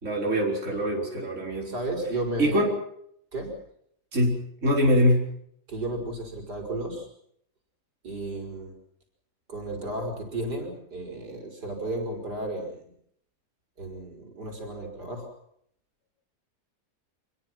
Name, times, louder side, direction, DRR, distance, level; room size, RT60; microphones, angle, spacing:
voice 1, 0.0-1.7 2.4-2.7 4.1-4.4 4.6-5.2, equal, 45° right, -1 dB, 5.2 m, -23 dB
voice 2, 1.6-2.6 3.3-3.5 5.7-7.1 8.0-8.7 9.5-12.9 13.8-15.3, right 2 dB, 80° right, 3 dB, 6.2 m, -33 dB
27.0 x 22.0 x 6.1 m, 0.69 s
omnidirectional pair, 1.7 m